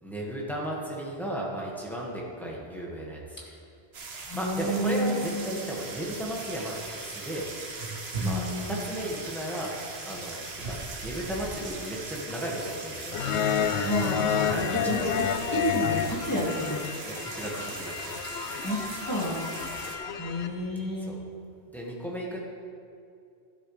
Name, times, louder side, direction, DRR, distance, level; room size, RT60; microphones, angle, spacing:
voice 1, 0.0-3.4 4.3-7.5 8.2-9.7 10.0-10.8 11.0-13.3 14.4-15.1 17.0-18.1 21.0-21.2 21.7-22.4, right 1 dB, ahead, -4 dB, 1.8 m, -35 dB
sound 1, 3.9-20.0, right 3 dB, 75° right, 1.3 m, -39 dB
voice 2, 4.1-5.4 8.2-8.8 13.8-14.3 14.9-15.0 15.6-16.8 18.6-18.8 19.1-19.5 20.2-21.1, equal, 20° left, -5 dB, 2.2 m, -30 dB
sound 2, 5.2-14.5, equal, 20° right, 2.4 m, -48 dB
sound 3, 13.1-20.5, left 7 dB, 85° left, 0.9 m, -30 dB
12.0 x 11.0 x 3.3 m, 2.4 s
omnidirectional pair, 1.1 m